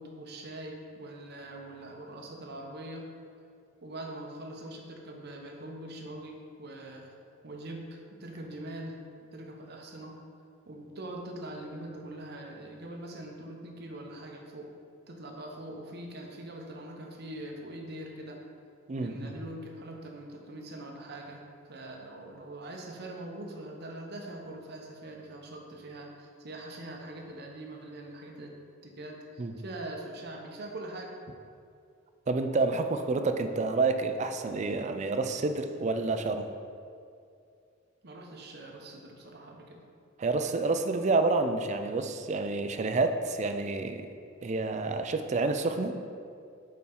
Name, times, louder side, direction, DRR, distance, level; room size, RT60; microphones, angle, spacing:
voice 1, 0.0-3.1 3.8-7.1 7.4-9.0 9.3-10.2 10.7-14.7 15.1-18.4 19.0-21.4 21.7-28.5 28.8-31.1 38.0-39.8, right 1 dB, 55° right, 1 dB, 0.8 m, -43 dB
voice 2, 18.9-19.3 29.4-29.5 32.3-36.5 40.2-44.1 44.4-45.9, right 3 dB, 35° right, 7 dB, 0.4 m, -29 dB
8.3 x 4.3 x 3.8 m, 2.4 s
head